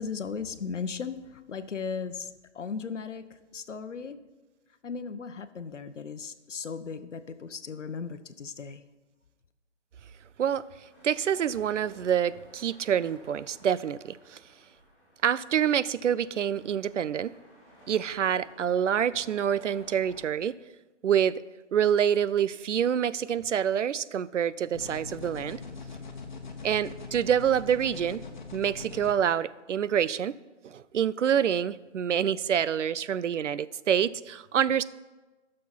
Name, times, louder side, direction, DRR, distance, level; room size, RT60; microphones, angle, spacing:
voice 1, 0.0-4.2 4.8-8.8, left 5 dB, 80° left, 11 dB, 0.9 m, -37 dB
sound 1, 10.9-20.3, equal, ahead, 2.6 m, -56 dB
voice 2, 11.0-14.4 15.2-17.3 17.9-20.6 21.0-21.4 21.7-25.6 26.6-28.2 28.5-30.4 30.6-34.8, right 9 dB, 85° right, 18 dB, 0.5 m, -27 dB
sound 2, 24.7-29.1, left 4 dB, 40° left, 1.1 m, -42 dB
13.0 x 6.5 x 4.4 m, 1.2 s
hypercardioid pair, 175°, 36 cm